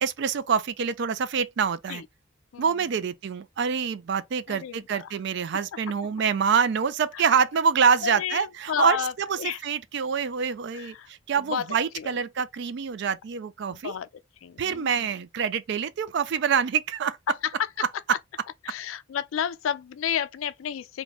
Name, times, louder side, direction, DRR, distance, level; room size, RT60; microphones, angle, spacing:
voice 1, 0.0-2.0 2.6-13.9 14.6-17.2, right 6 dB, 60° right, 0.4 m, -26 dB
voice 2, 4.5-5.1 7.1-7.3 8.0-9.6 10.7-12.1 13.7-14.1 14.4-15.1 17.3-17.9 18.6-21.0, left 8 dB, 80° left, 0.3 m, -32 dB
2.9 x 2.2 x 3.9 m
head